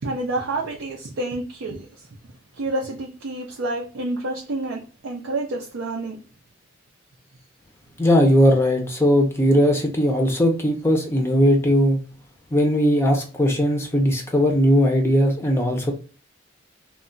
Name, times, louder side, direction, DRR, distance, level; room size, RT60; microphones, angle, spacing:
voice 1, 0.0-2.1 2.6-6.2, right 2 dB, 80° right, 0.5 m, -29 dB
voice 2, 8.0-12.0 12.5-15.9, equal, 15° left, 0.5 m, -18 dB
2.2 x 2.1 x 3.7 m
head